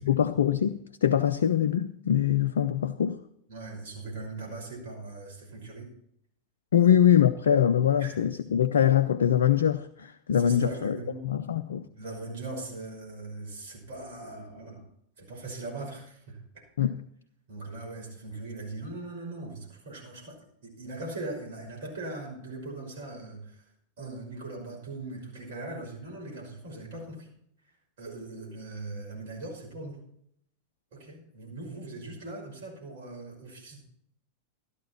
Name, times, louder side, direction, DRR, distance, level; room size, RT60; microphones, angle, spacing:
voice 1, 0.0-3.2 6.7-11.0 11.2-11.9 16.8-17.0, left 9 dB, 65° left, 0.6 m, -23 dB
voice 2, 3.5-5.9 6.8-6.9 8.0-8.2 10.3-11.3 11.9-14.9 15.2-16.6 17.5-23.7 24.0-27.3 28.0-30.0 30.9-33.8, right 2 dB, 55° right, 5.7 m, -40 dB
13.5 x 11.5 x 4.4 m
figure-of-eight pair, 90°, 0 cm